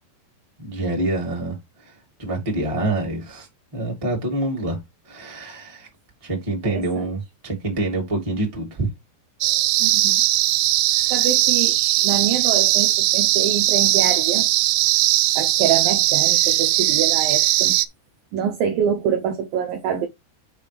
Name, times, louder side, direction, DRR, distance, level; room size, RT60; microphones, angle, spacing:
voice 1, 0.6-4.8 5.0-5.9 6.2-8.9 10.9-11.3, right 2 dB, 10° right, 2.1 m, -27 dB
voice 2, 6.6-7.1 9.8-10.1 11.1-11.8 12.0-14.5 15.4-17.8 18.3-20.1, right 8 dB, 70° right, 2.3 m, -25 dB
sound 1, 9.4-17.9, right 17 dB, 90° right, 2.8 m, -19 dB
7.3 x 5.7 x 3.5 m
omnidirectional pair, 5.0 m